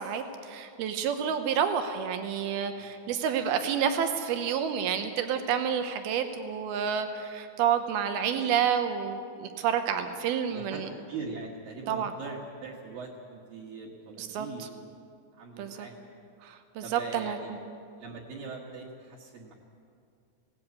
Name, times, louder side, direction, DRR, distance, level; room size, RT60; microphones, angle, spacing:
voice 1, 0.0-10.9 11.9-12.1 14.2-14.7 15.6-15.9 16.4-17.4, right 8 dB, 80° right, 7 dB, 2.2 m, -29 dB
voice 2, 10.5-14.9 15.3-16.0 16.8-17.6 18.0-19.5, right 4 dB, 60° right, -3 dB, 2.8 m, -41 dB
20.0 x 17.5 x 8.4 m, 2.4 s
omnidirectional pair, 5.7 m